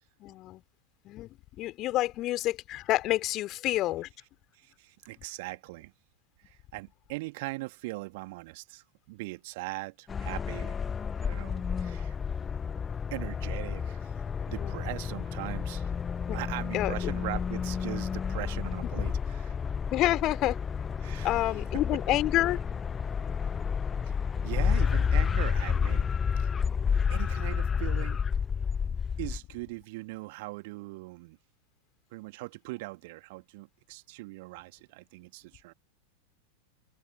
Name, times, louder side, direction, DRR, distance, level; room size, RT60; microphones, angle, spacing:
voice 1, 0.2-0.6 1.0-1.3 1.6-4.1 11.5-11.6 14.5-14.7 16.3-16.4 16.7-17.1 19.9-20.6 21.2-22.6, left 16 dB, 35° left, 3.1 m, -28 dB
voice 2, 4.5-5.9 6.4-10.8 11.2-12.2 13.1-14.1 14.5-15.9 16.3-19.6 21.0-21.6 21.9-22.0 24.0-24.1 24.4-26.1 26.4-26.5 27.1-28.2 29.2-31.4 32.1-35.7, right 23 dB, 50° right, 2.4 m, -40 dB
sound 1, 10.1-29.4, left 6 dB, 20° left, 0.5 m, -30 dB
figure-of-eight pair, 90°, 0 cm